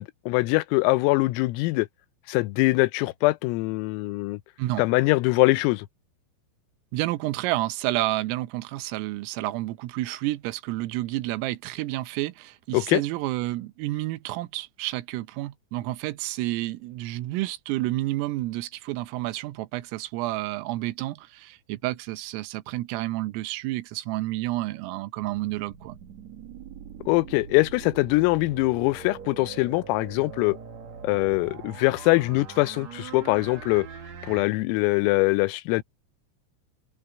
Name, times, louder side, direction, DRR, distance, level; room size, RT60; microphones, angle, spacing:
voice 1, 0.0-1.9 2.3-4.4 4.8-5.9 12.7-13.0 27.1-30.6 31.0-33.9 34.2-35.8, left 23 dB, 90° left, 3.4 m, -23 dB
voice 2, 6.9-26.0, right 17 dB, 85° right, 3.5 m, -30 dB
sound 1, 25.2-34.4, right 6 dB, 55° right, 2.0 m, -42 dB
open air
omnidirectional pair, 5.9 m